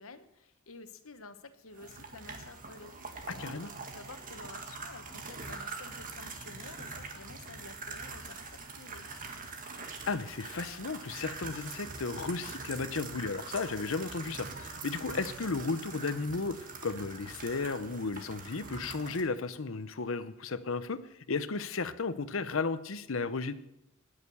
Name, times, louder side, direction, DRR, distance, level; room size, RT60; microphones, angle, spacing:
voice 1, 0.0-9.3, left 3 dB, 85° left, 10 dB, 1.2 m, -51 dB
sound 1, 1.7-19.2, right 4 dB, 40° right, 1.8 m, -43 dB
voice 2, 3.4-3.7 10.0-21.0 21.3-23.5, left 4 dB, 70° left, 14 dB, 0.7 m, -34 dB
19.5 x 6.7 x 6.9 m, 0.86 s
head